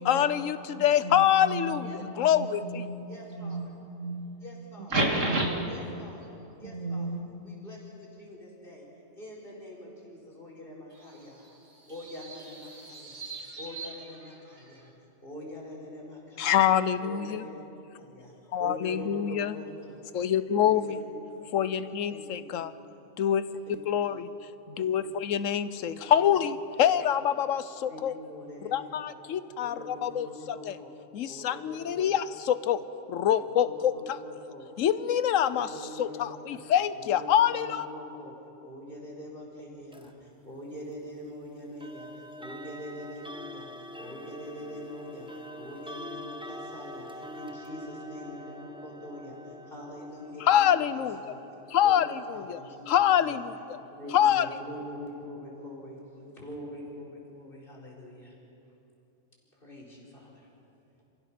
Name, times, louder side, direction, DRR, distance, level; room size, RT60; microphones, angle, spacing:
voice 1, 0.0-1.9 2.2-2.8 16.4-17.4 18.5-19.6 20.1-21.0 21.5-22.7 23.2-23.4 23.7-24.3 24.8-28.1 28.7-30.7 31.1-32.8 33.1-34.2 34.8-35.7 36.0-37.9 50.4-51.3 51.7-52.6 52.9-53.5 54.1-54.5, left 10 dB, 85° left, 14 dB, 1.1 m, -25 dB
voice 2, 0.8-4.2 4.8-5.7 6.6-7.3, right 2 dB, 80° right, 0 dB, 2.9 m, -32 dB
voice 3, 1.8-2.2 3.1-3.6 4.4-4.9 5.7-6.2 6.6-7.1 7.4-8.8 9.2-11.4 11.9-13.2 13.6-14.8 15.2-16.6 17.0-17.6 18.1-18.3 18.6-20.0 20.5-21.3 22.1-22.6 23.7-23.8 24.1-24.2 24.8-25.2 25.9-26.4 26.8-26.9 27.9-29.1 29.6-30.9 31.3-32.2 33.2-33.3 33.6-34.7 35.6-36.6 36.9-38.3 38.6-40.1 40.4-42.1 42.4-43.7 44.0-45.3 45.5-47.1 47.3-49.4 49.7-51.4 51.8-52.9 53.2-53.4 54.0-56.0 56.4-58.3 59.6-60.3, equal, 45° left, -3 dB, 4.7 m, -44 dB
sound 1, 10.9-14.9, right 4 dB, 60° right, 2.3 m, -45 dB
sound 2, 39.9-40.1 41.8-54.6, equal, 5° right, 0.8 m, -45 dB
28.5 x 16.0 x 5.9 m, 2.9 s
omnidirectional pair, 1.3 m